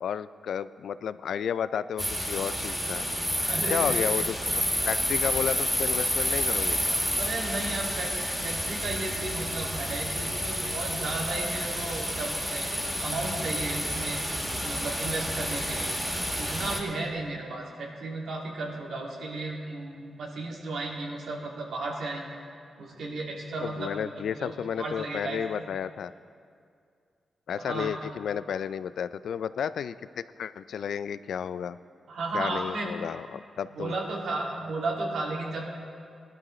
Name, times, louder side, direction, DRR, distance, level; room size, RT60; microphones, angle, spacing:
voice 1, 0.0-3.1 3.7-7.0 23.6-26.1 27.5-31.8 32.3-33.9, left 8 dB, 80° left, 15 dB, 0.3 m, -32 dB
sound 1, 2.0-16.8, equal, 10° right, 1.9 m, -30 dB
voice 2, 3.4-4.2 5.2-5.3 7.1-8.1 8.4-12.7 13.0-14.2 14.6-16.0 16.3-22.4 22.8-25.7 27.6-27.9 32.1-32.9 33.7-35.6, right 2 dB, 85° right, -2 dB, 2.2 m, -34 dB
18.5 x 11.5 x 3.1 m, 2.3 s
cardioid pair, 110°, 0 cm